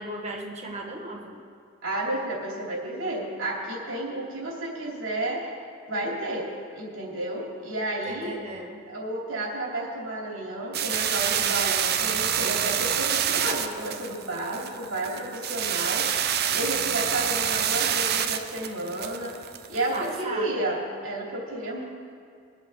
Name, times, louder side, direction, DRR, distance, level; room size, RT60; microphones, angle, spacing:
voice 1, 0.0-1.4 8.1-8.8 19.9-20.7, right 1 dB, 35° right, 1 dB, 1.4 m, -36 dB
voice 2, 1.8-5.5 5.9-6.5 6.7-8.4 8.9-16.1 16.5-19.4 19.7-21.8, right 1 dB, 80° right, -4 dB, 3.1 m, -31 dB
sound 1, 10.7-20.2, right 9 dB, 50° right, 0.6 m, -27 dB
22.5 x 7.8 x 3.6 m, 2.3 s
head